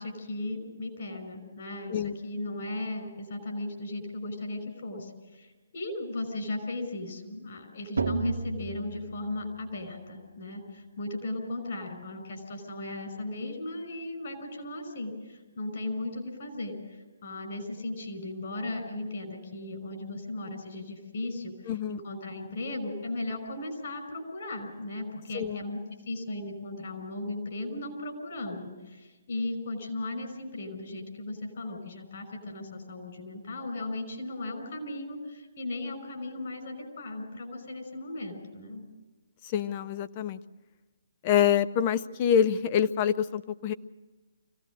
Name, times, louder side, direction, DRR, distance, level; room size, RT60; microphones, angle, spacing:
voice 1, 0.0-25.8 26.1-38.9, left 2 dB, 60° left, 4 dB, 5.6 m, -36 dB
sound 1, 8.0-9.9, right 4 dB, 80° right, 1.3 m, -34 dB
voice 2, 21.7-22.0 25.3-25.6 39.4-40.4 41.2-43.7, left 9 dB, 35° left, 13 dB, 0.6 m, -26 dB
25.0 x 16.5 x 6.5 m, 1.2 s
figure-of-eight pair, 140°, 0 cm